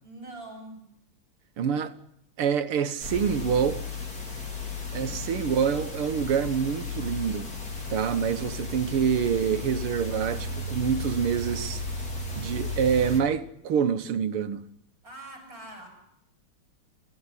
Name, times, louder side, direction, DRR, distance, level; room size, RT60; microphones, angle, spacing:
voice 1, 0.0-0.9 5.0-5.4 15.0-15.9, right 2 dB, 40° right, 8.5 m, -44 dB
voice 2, 1.6-1.9 2.4-3.8 4.9-7.5 7.9-11.8 12.4-14.6, right 7 dB, 85° right, 2.1 m, -26 dB
sound 1, 3.0-13.2, left 3 dB, 40° left, 4.9 m, -34 dB
28.5 x 14.5 x 9.9 m
omnidirectional pair, 2.4 m